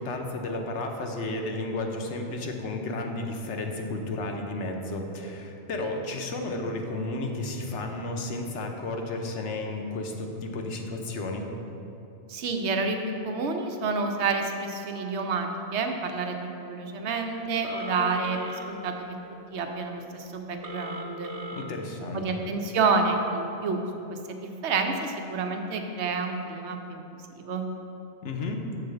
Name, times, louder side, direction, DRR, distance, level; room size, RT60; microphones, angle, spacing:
voice 1, 0.0-11.5 21.5-22.4 28.2-28.7, left 2 dB, 75° left, 3 dB, 1.0 m, -33 dB
voice 2, 12.3-18.4 18.7-19.1 19.5-21.3 22.1-23.8 24.1-27.0 27.3-27.7, right 4 dB, 75° right, 4 dB, 1.0 m, -29 dB
Telephone, 17.6-18.7 20.6-21.6, left 1 dB, 40° right, 0.7 m, -38 dB
7.1 x 4.0 x 6.6 m, 2.9 s
omnidirectional pair, 1.2 m